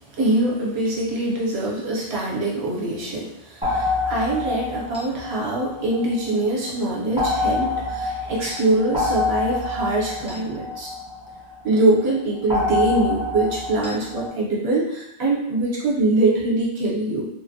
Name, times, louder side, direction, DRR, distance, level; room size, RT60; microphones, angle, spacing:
voice 1, 0.2-10.9 11.6-17.3, right 2 dB, 65° right, -4 dB, 1.0 m, -23 dB
sound 1, 3.6-6.4 7.2-11.7 12.5-14.3, left 3 dB, 5° right, 0.5 m, -26 dB
3.0 x 2.1 x 2.6 m, 0.83 s
omnidirectional pair, 1.2 m